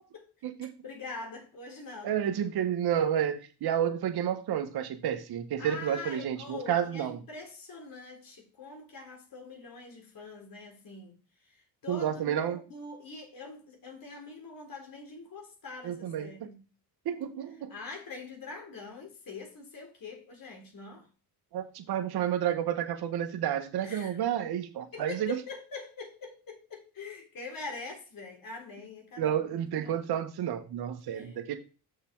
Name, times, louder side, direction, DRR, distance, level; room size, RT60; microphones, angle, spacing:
voice 1, 0.8-2.1 5.6-11.2 11.4-16.6 17.7-21.1 23.8-24.2 24.9-30.0 31.1-31.4, left 4 dB, 60° left, 3.5 m, -44 dB
voice 2, 2.0-7.2 11.9-12.6 15.8-16.5 17.0-17.7 21.5-25.4 29.2-31.6, right 9 dB, 70° right, 1.3 m, -30 dB
6.7 x 6.1 x 4.6 m
supercardioid pair, 70°, 39 cm